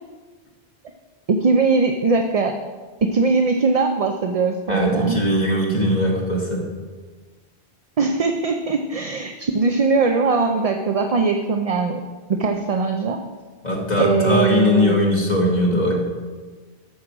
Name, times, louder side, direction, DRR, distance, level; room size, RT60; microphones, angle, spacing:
voice 1, 1.3-2.6 3.0-5.2 8.0-12.0 12.3-13.2 14.0-15.0, right 4 dB, 45° right, 4 dB, 0.6 m, -20 dB
voice 2, 4.7-6.6 13.6-16.0, left 1 dB, 45° left, -2 dB, 2.1 m, -20 dB
12.5 x 4.9 x 6.1 m, 1.4 s
omnidirectional pair, 1.1 m